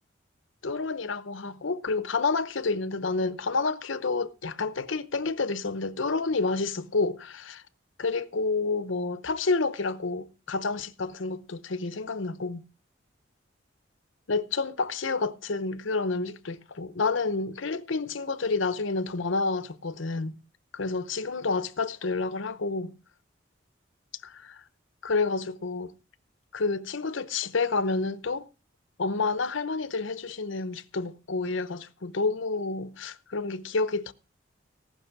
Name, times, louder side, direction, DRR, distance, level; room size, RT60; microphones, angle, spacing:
voice 1, 0.6-7.6 8.0-12.6 14.3-20.4 20.7-22.9 24.2-24.6 25.0-25.9 26.5-28.5 29.0-34.1, left 3 dB, 75° left, 0.8 m, -29 dB
18.0 x 6.1 x 5.9 m
head